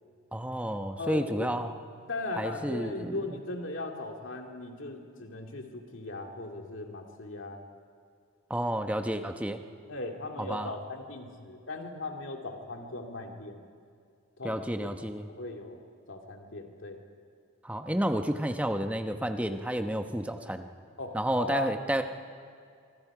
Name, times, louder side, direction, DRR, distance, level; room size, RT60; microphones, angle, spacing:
voice 1, 0.3-1.7 2.4-3.2 8.5-9.6 10.4-10.7 14.4-15.3 17.6-20.7 21.1-22.0, right 1 dB, 5° right, 6 dB, 0.9 m, -31 dB
voice 2, 1.0-1.6 2.1-7.6 9.9-13.6 14.4-14.6 15.0-17.0 21.0-21.7, left 2 dB, 65° left, 2 dB, 2.4 m, -38 dB
25.0 x 24.5 x 5.0 m, 2.3 s
head